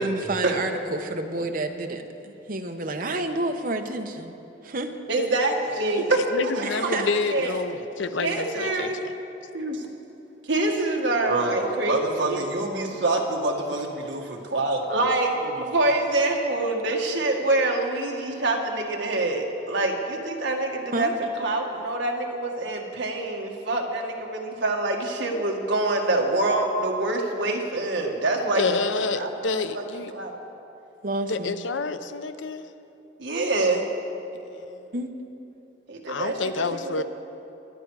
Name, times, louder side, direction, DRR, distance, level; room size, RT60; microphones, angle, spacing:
voice 1, 0.0-4.3 4.6-4.9 6.6-7.1 20.9-21.1 28.7-28.8 31.0-31.6 34.9-35.1, right 2 dB, 45° right, 5 dB, 0.9 m, -30 dB
voice 2, 5.1-6.9 7.3-7.5 8.2-9.0 9.5-9.8 10.5-21.1 21.4-28.6 29.2-29.6 30.1-30.4 33.2-33.8 35.9-36.3 36.8-37.0, right 2 dB, 65° right, 1 dB, 1.7 m, -25 dB
voice 3, 6.0-8.9 28.5-30.1 31.3-32.7 34.4-34.9 36.1-37.0, left 4 dB, 75° left, 11 dB, 0.6 m, -28 dB
23.0 x 9.6 x 4.8 m, 3.0 s
head